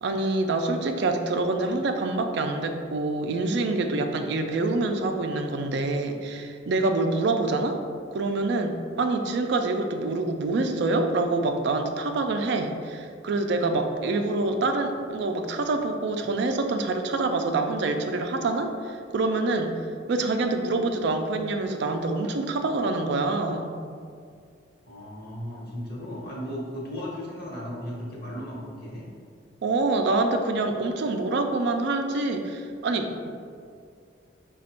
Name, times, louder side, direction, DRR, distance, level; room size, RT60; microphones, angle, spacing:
voice 1, 0.0-7.8 8.1-19.7 20.1-23.8 29.6-33.3, right 2 dB, 65° right, 5 dB, 0.4 m, -26 dB
voice 2, 24.8-29.0, equal, 55° left, -4 dB, 1.1 m, -36 dB
5.0 x 2.3 x 4.3 m, 2.2 s
head